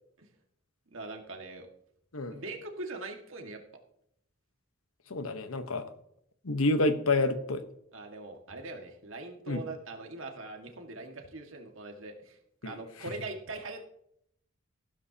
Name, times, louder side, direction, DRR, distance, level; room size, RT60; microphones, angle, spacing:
voice 1, 0.9-1.7 2.3-3.6 7.9-12.4 12.6-13.9, right 2 dB, 70° right, 3 dB, 1.9 m, -41 dB
voice 2, 5.1-5.8 6.4-7.7 9.5-9.6 12.6-12.7, left 2 dB, 85° left, 9 dB, 1.2 m, -28 dB
14.5 x 12.5 x 2.9 m, 0.72 s
head